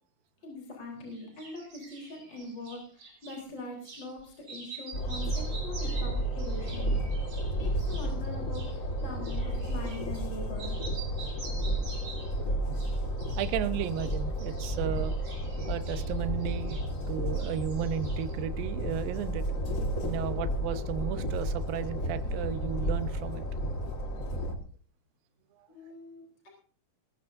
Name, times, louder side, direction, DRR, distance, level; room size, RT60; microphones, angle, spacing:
voice 1, 0.4-6.9 7.4-10.8 25.7-26.5, left 2 dB, 25° left, -1 dB, 4.2 m, -43 dB
sound 1, 1.1-3.4 3.8-4.1 4.4-10.3 10.6-12.4 12.7-13.5 13.8-17.1 17.3-18.4, right 3 dB, 50° right, 7.7 m, -47 dB
Train, 4.9-24.6, right 1 dB, 60° left, 0.8 m, -32 dB
voice 2, 13.4-15.1 15.7-16.8 17.1-19.4 20.0-23.4, right 9 dB, 70° right, 11 dB, 2.6 m, -34 dB
20.0 x 14.5 x 2.7 m, 0.43 s
omnidirectional pair, 4.6 m